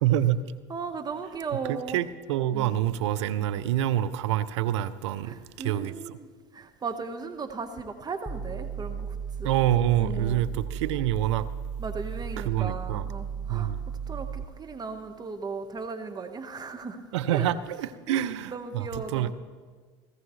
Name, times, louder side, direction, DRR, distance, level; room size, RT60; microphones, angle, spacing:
voice 1, 0.0-0.4 1.7-6.2 9.4-11.5 12.4-13.1 13.5-13.8 17.1-19.3, right 12 dB, 75° right, 15 dB, 0.6 m, -27 dB
voice 2, 0.7-2.0 2.5-2.8 3.4-3.5 5.2-6.3 6.5-9.1 9.4-9.6 10.0-10.4 11.8-17.0 17.3-17.5 18.1-19.3, right 4 dB, 25° right, 6 dB, 1.2 m, -37 dB
sound 1, 8.3-14.4, right 7 dB, 5° left, 0.9 m, -35 dB
17.5 x 15.5 x 3.2 m, 1.5 s
hypercardioid pair, 80°, 15 cm